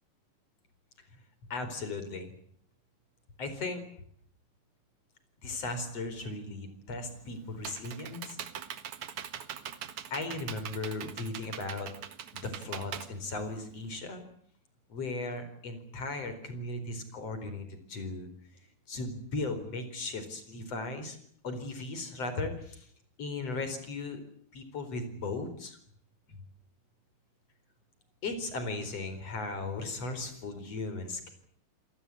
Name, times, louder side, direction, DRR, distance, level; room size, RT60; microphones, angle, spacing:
voice 1, 1.5-2.3 3.4-3.8 5.4-8.4 10.1-11.9 12.3-14.2 14.9-18.3 18.9-21.2 21.4-22.9 23.2-24.2 24.5-25.8 26.3-26.4 28.2-31.3, left 3 dB, 45° left, 10 dB, 5.4 m, -37 dB
Computer keyboard, 7.1-14.0, right 9 dB, 60° right, 2.7 m, -42 dB
27.0 x 19.0 x 8.6 m, 0.62 s
omnidirectional pair, 4.1 m